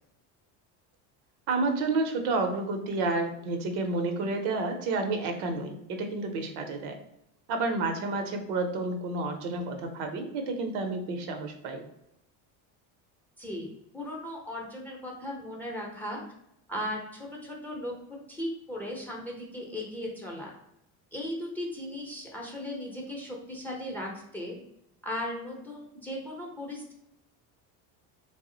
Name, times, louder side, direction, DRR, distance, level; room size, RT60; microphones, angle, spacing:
voice 1, 1.5-7.0 7.5-11.8, right 3 dB, 80° right, 5 dB, 0.8 m, -30 dB
voice 2, 13.4-13.7 13.9-16.2 16.7-17.9 18.3-20.5 21.1-24.6 25.0-26.9, left 1 dB, 5° left, -2 dB, 0.7 m, -37 dB
3.5 x 2.0 x 3.7 m, 0.80 s
cardioid pair, 130°, 40 cm